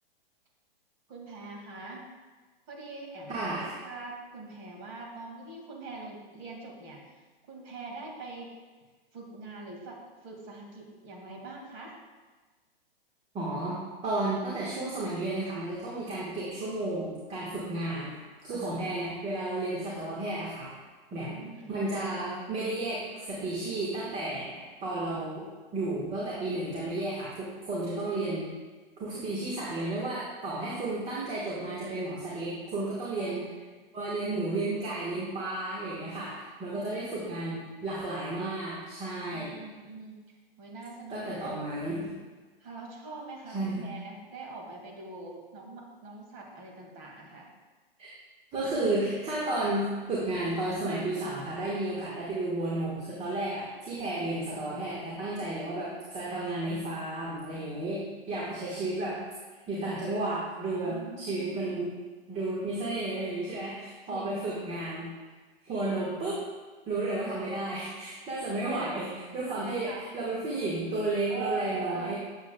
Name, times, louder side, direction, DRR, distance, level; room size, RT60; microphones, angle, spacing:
voice 1, 1.1-2.0 2.7-7.0 7.5-8.5 9.1-10.0 10.2-11.9 18.5-18.8 21.1-22.1 33.2-33.4 36.7-37.2 39.3-40.1 40.6-41.5 42.6-47.5 60.8-61.8 64.1-64.7 68.6-68.9 69.5-70.0 71.3-72.2, right 3 dB, 40° right, 0 dB, 2.0 m, -43 dB
voice 2, 3.3-3.7 13.3-18.2 18.4-20.7 21.1-21.4 21.7-25.5 25.7-28.5 29.0-33.5 33.9-39.6 41.1-42.1 43.5-43.9 48.0-48.1 48.5-59.2 59.7-62.0 62.3-65.1 65.6-66.4 66.8-72.2, right 2 dB, 20° right, -5 dB, 1.3 m, -32 dB
8.7 x 7.2 x 2.2 m, 1.3 s
hypercardioid pair, 125°, 30 cm